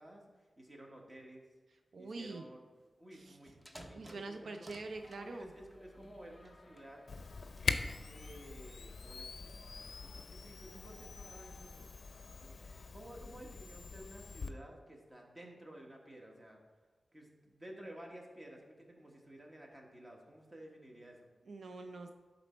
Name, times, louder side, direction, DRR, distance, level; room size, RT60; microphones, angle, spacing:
voice 1, 0.0-1.4 2.0-2.6 3.0-4.7 5.2-7.0 8.1-11.9 12.4-12.7 12.9-16.6 17.1-21.3, right 1 dB, 25° right, 0 dB, 1.3 m, -53 dB
voice 2, 1.9-2.5 3.1-3.4 3.9-5.5 21.5-22.1, right 3 dB, 80° right, 5 dB, 0.5 m, -45 dB
sound 1, 3.3-5.3 6.0-6.9 7.4-8.2, equal, 5° right, 0.7 m, -56 dB
sound 2, 4.9-12.9, left 2 dB, 35° left, 0.7 m, -61 dB
Camera, 7.1-14.5, left 4 dB, 70° left, 0.4 m, -43 dB
11.0 x 4.1 x 4.3 m, 1.3 s
wide cardioid pair, 120°, 0 cm